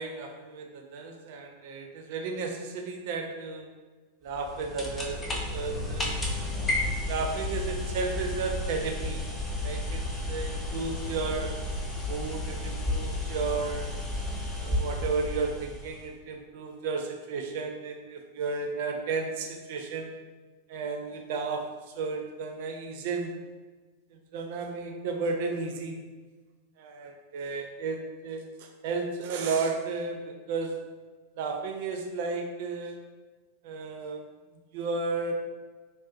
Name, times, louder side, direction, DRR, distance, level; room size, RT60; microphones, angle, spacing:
voice 1, 0.0-3.7 4.2-6.2 6.8-9.2 9.6-11.5 12.0-13.9 14.6-20.2 20.7-23.4 24.1-26.0 26.8-30.8 31.3-33.0 33.6-34.2 34.7-35.3, right 4 dB, 50° right, 3 dB, 0.3 m, -33 dB
sound 1, 4.3-16.1, left 1 dB, 15° left, 0.4 m, -32 dB
2.4 x 2.1 x 2.5 m, 1.3 s
figure-of-eight pair, 90°, 0 cm